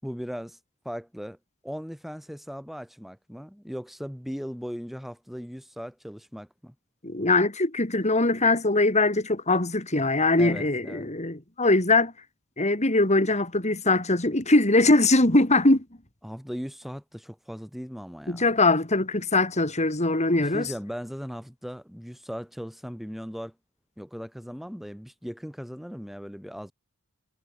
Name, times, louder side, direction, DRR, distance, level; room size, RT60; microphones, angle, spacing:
voice 1, 0.0-0.6 0.9-1.4 1.6-6.7 10.4-11.1 16.2-18.5 20.4-23.5 24.0-26.7, equal, ahead, 5.5 m, -38 dB
voice 2, 7.0-12.1 12.6-15.8 18.3-20.7, left 2 dB, 30° left, 3.5 m, -22 dB
head